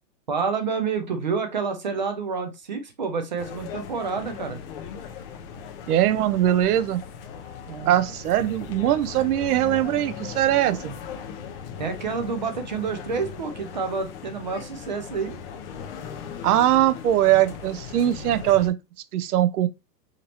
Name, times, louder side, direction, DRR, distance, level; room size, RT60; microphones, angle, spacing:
voice 1, 0.3-4.6 7.7-7.9 11.8-15.4, right 5 dB, 30° right, 0.4 m, -28 dB
sound 1, 3.4-18.7, left 7 dB, 35° left, 0.8 m, -38 dB
voice 2, 5.9-7.0 7.9-10.9 16.4-18.8 19.1-19.7, right 12 dB, 65° right, 0.7 m, -21 dB
5.1 x 2.8 x 2.8 m
supercardioid pair, 165°, 49 cm